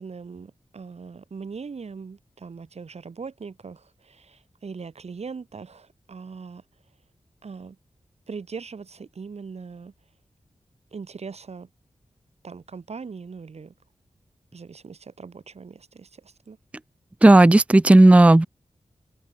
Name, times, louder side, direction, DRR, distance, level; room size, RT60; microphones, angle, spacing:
voice 1, 0.0-6.6 7.4-7.8 8.3-9.9 10.9-11.7 12.4-13.7 14.5-16.6, right 5 dB, 70° right, 7.2 m, -40 dB
voice 2, 17.2-18.5, right 2 dB, 10° right, 0.5 m, -12 dB
wide cardioid pair, 115°, 11 cm